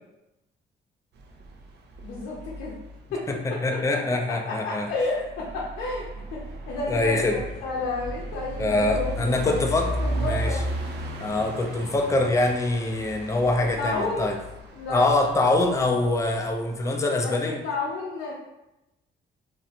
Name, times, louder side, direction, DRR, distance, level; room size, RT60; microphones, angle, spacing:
sound 1, 1.2-3.4 5.0-16.8, right 1 dB, 60° right, 0.5 m, -35 dB
voice 1, 2.0-2.7 3.1-3.3 4.3-9.7 10.0-10.6 13.6-14.4 14.7-15.1 17.2-18.3, left 3 dB, 85° left, -5 dB, 0.6 m, -31 dB
voice 2, 3.3-4.9 6.9-7.4 8.6-10.6 11.2-14.4 14.9-17.6, left 2 dB, 15° left, 2 dB, 0.4 m, -24 dB
2.5 x 2.0 x 2.7 m, 0.94 s
cardioid pair, 90°, 20 cm